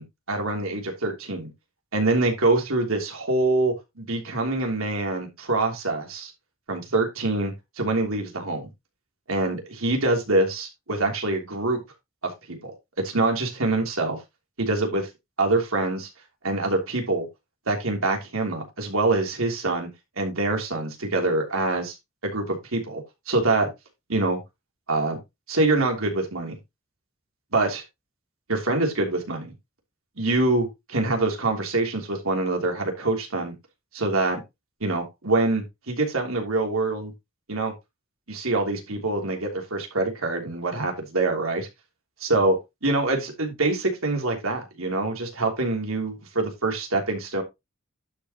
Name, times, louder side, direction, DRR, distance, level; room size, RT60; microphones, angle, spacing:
voice 1, 0.0-1.5 1.9-6.3 6.7-8.7 9.3-11.8 12.2-12.7 13.0-14.2 14.6-15.1 15.4-16.1 16.4-17.3 17.7-19.9 20.2-21.9 22.2-23.7 24.1-24.4 24.9-25.2 25.5-26.6 27.5-27.8 28.5-29.5 30.2-33.5 33.9-34.4 34.8-37.1 37.5-37.7 38.3-41.7 42.3-42.5 42.8-47.4, right 2 dB, 85° right, 3.1 m, -25 dB
11.5 x 5.7 x 3.0 m
head